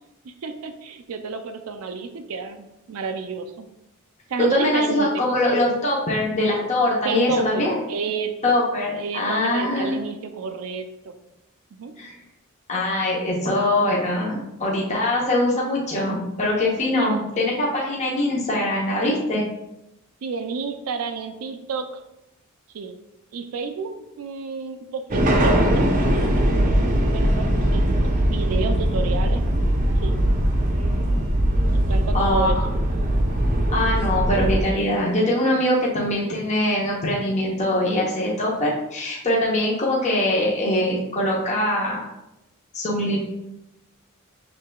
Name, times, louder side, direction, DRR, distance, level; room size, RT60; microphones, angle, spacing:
voice 1, 0.3-3.7 4.3-5.2 7.0-8.5 9.0-11.1 11.7-11.9 16.9-17.5 20.2-21.9 22.7-23.0 23.3-26.5 27.1-27.9 28.3-29.5 30.0-30.1 31.7-32.5 36.2-36.4, right 5 dB, 80° right, 7 dB, 0.4 m, -30 dB
voice 2, 4.4-7.8 8.4-10.0 12.0-12.2 12.7-19.4 32.1-32.6 33.7-42.0 42.7-43.2, left 1 dB, 35° left, -4 dB, 0.8 m, -22 dB
sound 1, 25.1-34.6, right 1 dB, 40° right, 0.6 m, -20 dB
6.5 x 3.3 x 2.2 m, 0.88 s
head